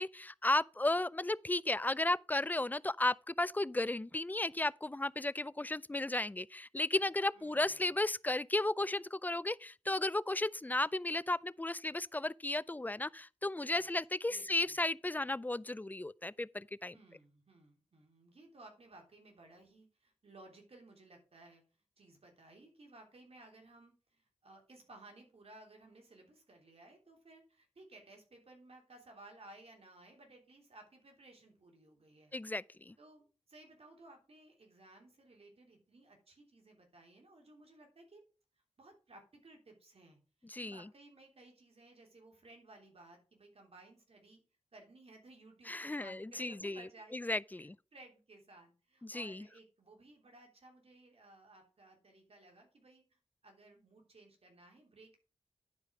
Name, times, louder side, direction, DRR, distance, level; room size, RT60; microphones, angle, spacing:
voice 1, 0.0-16.9 32.3-32.9 40.5-40.8 45.7-46.8 47.1-47.7 49.0-49.4, left 2 dB, 15° left, 0.4 m, -34 dB
voice 2, 7.3-7.9 13.6-13.9 14.3-14.8 16.9-21.6 22.0-32.3 33.0-38.2 38.8-44.4 44.7-55.2, right 2 dB, 60° right, 3.1 m, -58 dB
10.5 x 5.0 x 4.9 m
cardioid pair, 45°, 11 cm